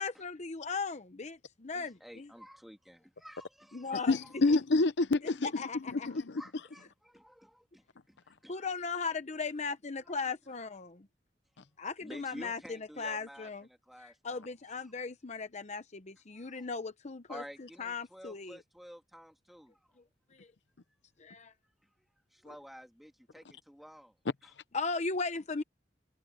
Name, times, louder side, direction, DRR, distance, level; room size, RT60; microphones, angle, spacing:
voice 1, 0.0-2.3 3.7-4.2 5.2-6.1 8.5-11.0 11.8-13.7 14.0-18.6 21.2-21.5 24.7-25.6, left 4 dB, 40° left, 0.9 m, -37 dB
voice 2, 1.7-4.2 6.4-8.2 8.4-8.6 12.0-14.9 16.3-16.6 17.3-19.8 22.3-24.1 24.4-24.5, equal, ahead, 2.0 m, -51 dB
voice 3, 4.1-6.4, left 3 dB, 75° left, 0.8 m, -28 dB
head